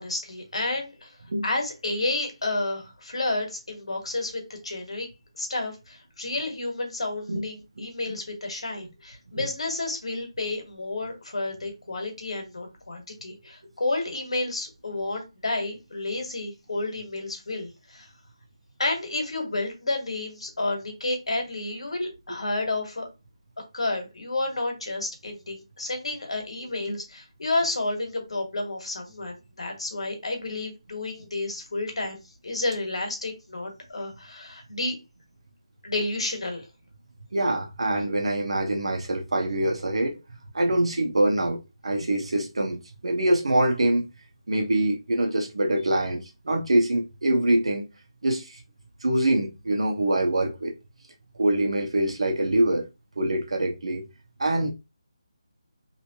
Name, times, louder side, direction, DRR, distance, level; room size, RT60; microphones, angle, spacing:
voice 1, 0.0-1.1 1.4-5.1 5.3-18.1 18.8-23.1 23.7-32.2 32.4-35.0 35.8-36.7, left 2 dB, 70° left, 1.4 m, -31 dB
voice 2, 37.3-40.2 40.5-41.6 41.8-44.0 44.5-47.9 48.2-48.6 49.0-50.7 51.4-52.8 53.2-54.0 54.4-54.7, right 1 dB, 75° right, 1.2 m, -24 dB
3.1 x 3.1 x 2.9 m
figure-of-eight pair, 165°, 3 cm